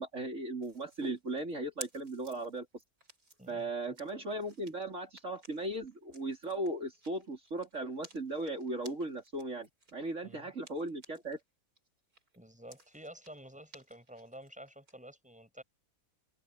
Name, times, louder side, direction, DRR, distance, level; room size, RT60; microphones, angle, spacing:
voice 1, 0.0-2.7 3.5-11.4, right 2 dB, 55° right, 4.5 m, -37 dB
sound 1, 0.6-11.4 11.8-14.9, right 1 dB, 75° right, 8.3 m, -55 dB
voice 2, 3.4-4.0 10.2-10.5 12.4-15.6, right 1 dB, 5° right, 7.7 m, -51 dB
omnidirectional pair, 1.6 m